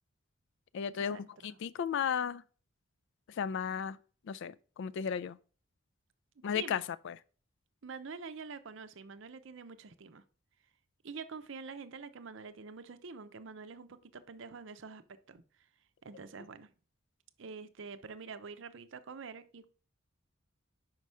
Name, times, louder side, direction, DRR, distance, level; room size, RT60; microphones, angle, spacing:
voice 1, 0.7-2.4 3.3-4.0 4.2-5.4 6.4-7.2, left 7 dB, 65° left, 0.3 m, -35 dB
voice 2, 7.8-10.2 11.0-15.0 15.3-15.4 16.0-16.7 17.4-19.7, right 5 dB, 65° right, 0.6 m, -46 dB
5.2 x 4.7 x 5.5 m
head